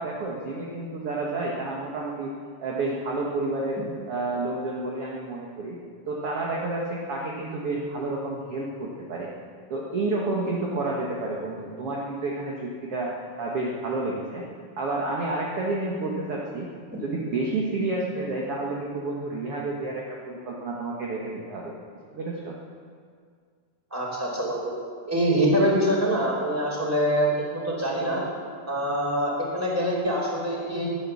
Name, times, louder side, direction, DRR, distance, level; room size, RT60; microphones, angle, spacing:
voice 1, 0.0-2.3 2.6-3.8 4.1-5.8 6.1-9.3 9.7-14.4 14.8-16.7 17.0-21.8 22.1-22.5, right 2 dB, 50° right, -3 dB, 2.2 m, -30 dB
voice 2, 23.9-24.7 25.1-28.2 28.7-30.9, equal, 5° right, -3 dB, 3.9 m, -24 dB
19.0 x 10.0 x 7.2 m, 2.1 s
omnidirectional pair, 3.7 m